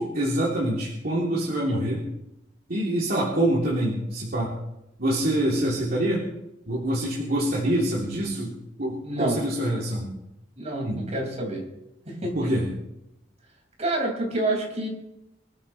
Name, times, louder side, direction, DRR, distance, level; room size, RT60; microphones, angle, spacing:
voice 1, 0.0-2.0 2.7-4.5 5.0-6.2 6.7-8.5 8.8-10.1 10.8-11.0 12.3-12.7, right 1 dB, 55° right, -5 dB, 3.1 m, -25 dB
voice 2, 9.0-9.4 10.6-11.6 12.1-12.3 13.8-14.9, right 1 dB, 40° right, 0 dB, 5.4 m, -28 dB
25.5 x 13.0 x 3.3 m, 0.86 s
head